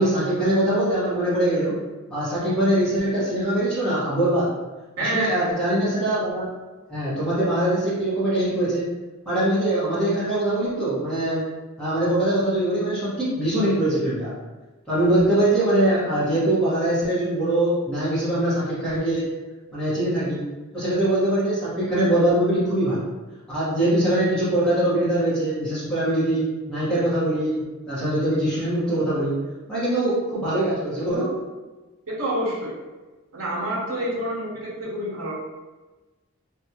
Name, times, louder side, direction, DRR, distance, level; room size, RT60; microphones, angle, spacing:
voice 1, 0.0-1.8 2.1-4.5 5.0-6.5 6.9-8.9 9.2-11.4 11.8-14.3 14.9-19.3 19.7-20.4 20.7-23.1 23.5-29.3 29.7-31.3, right 1 dB, 5° left, -12 dB, 1.1 m, -22 dB
voice 2, 5.0-5.5 32.1-32.7 33.3-35.3, right 1 dB, 70° right, -4 dB, 0.8 m, -27 dB
2.6 x 2.3 x 2.8 m, 1.2 s
head